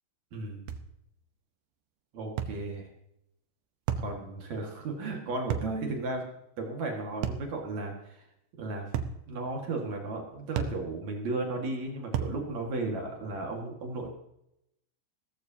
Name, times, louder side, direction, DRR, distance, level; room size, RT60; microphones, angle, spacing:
voice 1, 0.3-0.7 2.1-2.8 4.0-6.2 6.6-8.2 8.6-8.9 9.3-14.1, right 2 dB, 50° right, 1 dB, 2.3 m, -34 dB
sound 1, 0.7-0.9 2.4-2.6 3.9-4.1 5.5-5.8 7.2-7.5 8.9-9.2 10.6-10.8 12.1-12.4, right 7 dB, 80° right, 3.0 m, -32 dB
17.0 x 14.0 x 2.8 m, 0.80 s
omnidirectional pair, 5.3 m